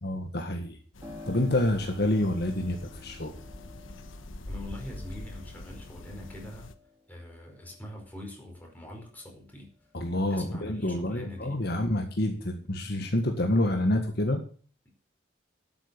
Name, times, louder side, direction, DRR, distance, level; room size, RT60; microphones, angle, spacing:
voice 1, 0.0-0.8 1.3-3.3 9.9-14.4, left 1 dB, 55° left, 4 dB, 1.8 m, -28 dB
sound 1, 0.9-6.7, left 1 dB, 90° left, 1.3 m, -44 dB
Piano, 1.0-9.5 9.9-10.9, left 2 dB, 15° right, 3.7 m, -51 dB
voice 2, 4.5-6.7 7.1-9.7 10.3-11.6 14.3-14.4, left 1 dB, 10° left, 0 dB, 5.0 m, -43 dB
12.0 x 9.1 x 7.0 m, 0.42 s
head